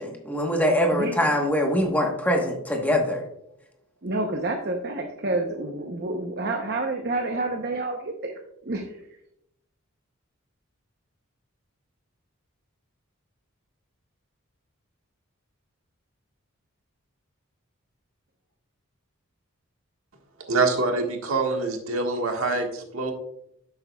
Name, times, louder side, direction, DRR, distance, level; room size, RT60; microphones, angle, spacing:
voice 1, 0.0-3.2, equal, 10° left, 1 dB, 1.1 m, -23 dB
voice 2, 0.9-1.3 4.0-8.3 8.7-9.0, right 2 dB, 50° right, 3 dB, 0.8 m, -29 dB
voice 3, 20.5-23.1, right 3 dB, 80° right, 2 dB, 1.5 m, -25 dB
11.0 x 7.9 x 2.3 m, 0.79 s
head